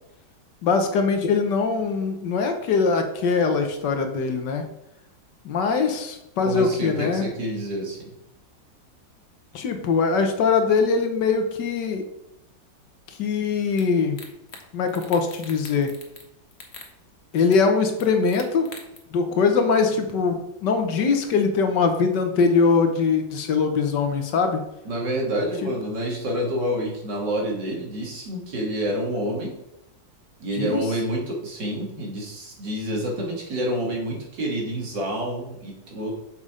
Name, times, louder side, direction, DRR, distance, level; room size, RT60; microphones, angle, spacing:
voice 1, 0.6-4.6 5.4-7.3 9.5-12.0 13.1-14.2 14.7-15.9 17.3-18.7 19.1-24.6 25.6-25.7 30.6-30.8, left 5 dB, 70° left, 6 dB, 1.5 m, -22 dB
voice 2, 6.4-8.1 24.8-29.6 30.4-36.1, equal, 65° right, -1 dB, 2.6 m, -28 dB
sound 1, 13.8-13.9 14.2-14.6 14.9-16.3 16.5-16.9 17.5-17.6 18.0-19.0, left 4 dB, 40° left, 1.3 m, -42 dB
6.7 x 5.6 x 4.9 m, 0.85 s
omnidirectional pair, 2.0 m